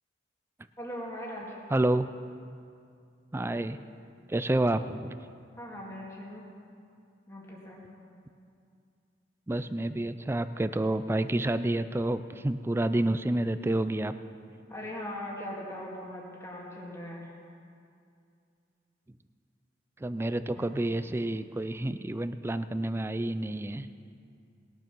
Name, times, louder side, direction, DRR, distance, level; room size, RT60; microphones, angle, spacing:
voice 1, 0.8-1.6 3.4-3.5 5.6-6.5 7.3-7.8 14.7-17.3 20.5-20.7, left 1 dB, 15° left, -4 dB, 2.3 m, -40 dB
voice 2, 1.7-2.1 3.3-3.8 4.3-5.1 9.5-14.1 20.0-23.9, right 1 dB, 15° right, 12 dB, 0.3 m, -29 dB
20.0 x 7.0 x 6.0 m, 2.4 s
head